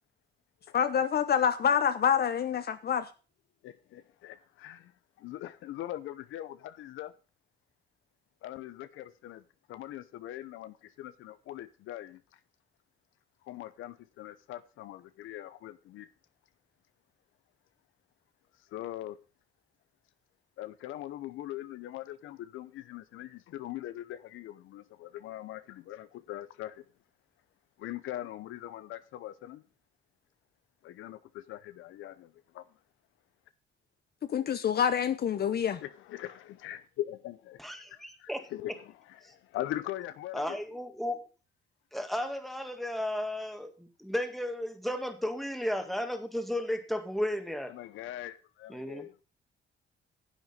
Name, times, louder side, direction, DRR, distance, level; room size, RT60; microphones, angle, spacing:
voice 1, 0.7-3.1 34.3-35.8, left 8 dB, 50° left, 0.8 m, -27 dB
voice 2, 3.6-4.9 5.2-7.1 8.4-9.4 9.7-12.2 13.4-16.1 18.7-19.2 20.6-26.8 27.8-29.6 30.8-32.6 35.4-37.6 38.2-40.6 47.7-49.2, left 13 dB, 85° left, 0.8 m, -41 dB
voice 3, 37.6-38.5 39.2-39.3 40.3-41.2 41.9-47.7 48.7-49.1, left 1 dB, ahead, 2.0 m, -34 dB
10.5 x 8.0 x 5.4 m
cardioid pair, 90°, 20 cm